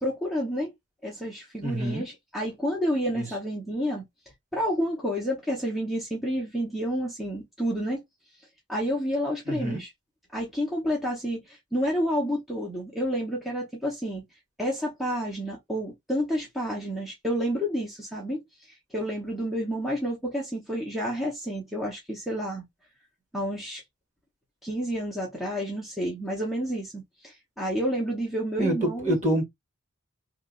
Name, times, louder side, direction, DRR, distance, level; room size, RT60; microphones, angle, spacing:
voice 1, 0.0-0.7 1.0-4.0 4.5-8.0 8.7-9.9 10.3-14.2 14.6-18.4 18.9-22.7 23.3-23.8 24.6-29.2, equal, ahead, 0.9 m, -29 dB
voice 2, 1.6-2.0 3.1-3.3 9.5-9.8 28.6-29.4, right 1 dB, 35° right, 1.8 m, -26 dB
3.0 x 2.5 x 3.8 m
head